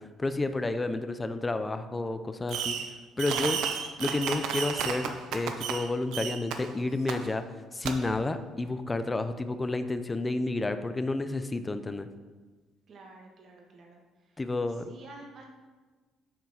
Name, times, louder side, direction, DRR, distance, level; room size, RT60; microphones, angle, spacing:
voice 1, 0.0-2.8 3.2-3.6 4.0-7.4 7.7-12.1 14.4-14.9, left 2 dB, 15° left, 10 dB, 0.4 m, -30 dB
Fireworks, 2.5-2.9 3.2-5.8 6.1-6.6 7.1-7.2 7.8-7.9, right 7 dB, 75° right, 0.8 m, -32 dB
voice 2, 12.9-14.0 14.8-15.5, right 2 dB, 45° right, 1 dB, 1.5 m, -49 dB
7.4 x 5.9 x 5.6 m, 1.3 s
cardioid pair, 145°, 0 cm